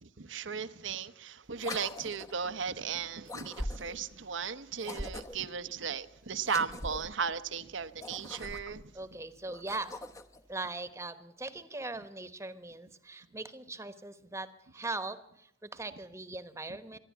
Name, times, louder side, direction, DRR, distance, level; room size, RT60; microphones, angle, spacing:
voice 1, 0.0-8.9, right 6 dB, 80° right, 1.0 m, -36 dB
sound 1, 1.6-2.4 3.3-4.1 4.8-5.5 6.4-7.1 7.9-8.9 9.5-10.4, left 1 dB, 15° left, 0.9 m, -41 dB
voice 2, 8.9-9.9 10.5-17.0, right 2 dB, 15° right, 1.2 m, -40 dB
26.0 x 11.5 x 9.4 m
head